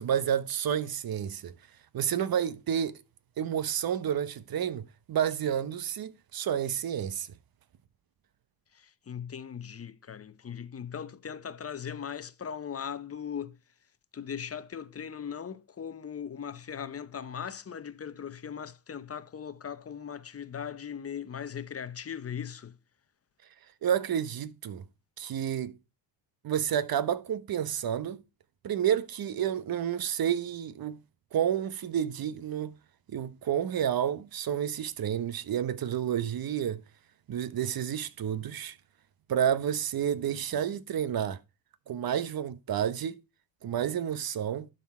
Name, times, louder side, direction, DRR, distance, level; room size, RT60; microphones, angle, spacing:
voice 1, 0.0-1.5 1.9-3.0 3.4-7.3 23.8-24.8 25.2-25.8 26.4-28.2 28.6-31.0 31.3-32.8 33.1-36.8 37.3-38.8 39.3-41.4 41.9-43.2 43.6-44.7, right 9 dB, 45° right, 1.0 m, -30 dB
voice 2, 8.7-13.6 14.1-22.8, left 7 dB, 30° left, 0.8 m, -39 dB
11.5 x 4.2 x 4.3 m
supercardioid pair, 75°, 50 cm